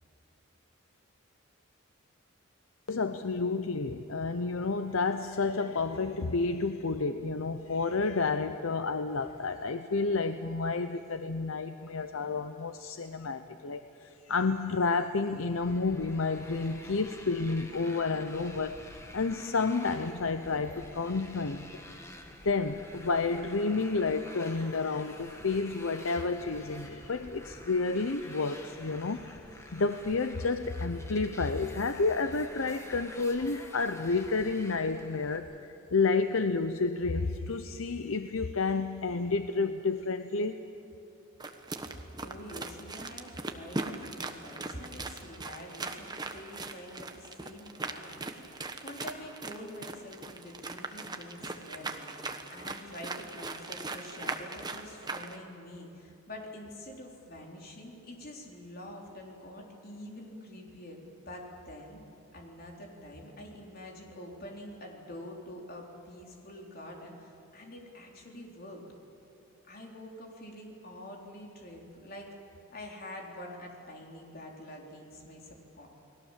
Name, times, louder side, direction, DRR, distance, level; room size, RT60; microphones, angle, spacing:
voice 1, 2.9-18.8 19.1-21.8 22.4-29.4 29.7-40.6, left 4 dB, 75° left, 9 dB, 0.8 m, -30 dB
Motorcycle, 15.6-35.4, left 1 dB, 15° left, 1.8 m, -49 dB
sound 1, 41.4-55.4, right 3 dB, 20° right, 1.2 m, -39 dB
voice 2, 42.2-61.0 61.3-62.0 62.3-68.8 69.7-72.3 72.7-75.9, left 1 dB, 45° left, 0 dB, 3.9 m, -46 dB
30.0 x 20.5 x 7.4 m, 3.0 s
head